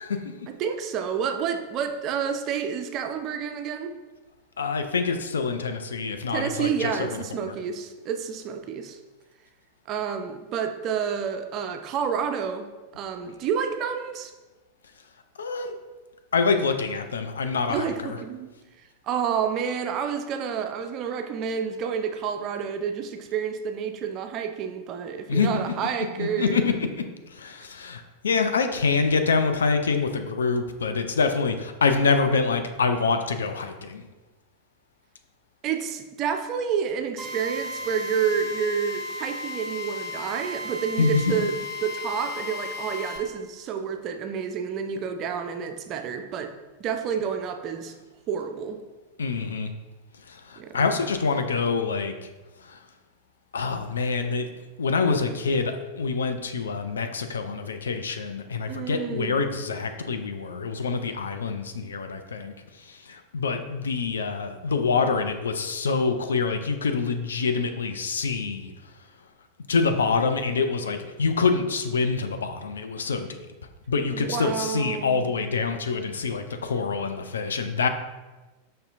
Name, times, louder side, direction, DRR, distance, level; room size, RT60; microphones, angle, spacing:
voice 1, 0.5-3.9 6.3-9.0 9.9-12.7 12.9-14.3 17.7-18.5 19.0-26.6 35.6-41.5 41.8-46.5 46.8-48.0 48.3-48.8 50.6-50.9 58.7-59.4 74.0-75.3, right 7 dB, 40° right, 7 dB, 0.3 m, -29 dB
voice 2, 4.6-7.6 15.4-15.8 16.3-18.2 25.3-25.5 26.2-26.7 27.3-34.0 41.0-41.3 49.2-49.7 50.3-52.1 52.6-52.8 53.5-54.5 54.8-68.7 69.7-73.5 73.9-77.9, left 4 dB, 75° left, 7 dB, 0.3 m, -26 dB
Drill, 37.2-43.2, left 2 dB, 5° right, 0.8 m, -35 dB
5.2 x 2.7 x 2.5 m, 1.2 s
figure-of-eight pair, 90°, 0 cm